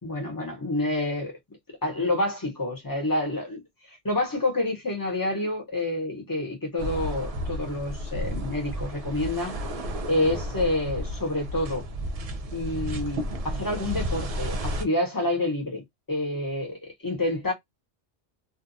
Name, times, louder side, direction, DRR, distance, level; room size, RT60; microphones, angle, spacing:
voice 1, 0.0-1.4 1.8-9.6 10.0-11.9 12.5-17.5, left 1 dB, 20° left, 0.8 m, -28 dB
sound 1, 6.8-14.8, equal, 55° right, 0.4 m, -32 dB
2.5 x 2.2 x 2.6 m
omnidirectional pair, 1.2 m